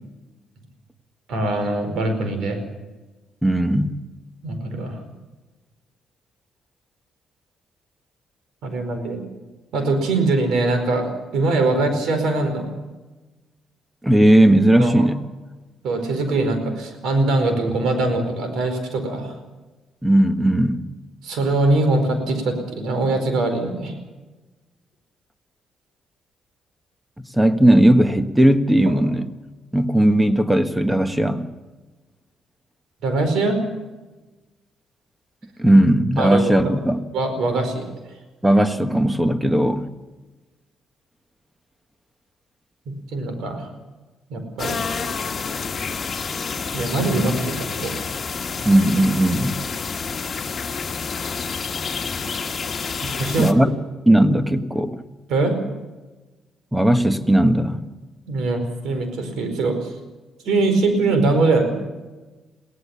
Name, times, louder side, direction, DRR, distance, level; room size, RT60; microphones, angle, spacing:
voice 1, 1.3-2.6 4.4-5.0 8.6-9.2 9.7-12.7 14.8-15.0 15.8-19.4 21.2-23.9 28.9-29.0 33.0-33.6 36.2-36.7 37.1-37.9 43.1-43.7 44.3-44.8 46.7-47.9 53.0-53.7 55.3-55.5 58.3-59.8 60.4-61.8, right 2 dB, 80° right, 7 dB, 4.8 m, -22 dB
voice 2, 3.4-3.9 14.0-15.2 20.0-20.8 27.3-29.3 29.7-31.5 35.6-37.0 38.4-39.9 48.6-49.6 53.4-53.7 54.1-55.0 56.7-57.8, right 1 dB, 5° right, 9 dB, 1.5 m, -17 dB
sound 1, 44.6-53.5, left 5 dB, 40° left, 1.6 m, -28 dB
22.5 x 17.5 x 7.3 m, 1.2 s
cardioid pair, 90°, 0 cm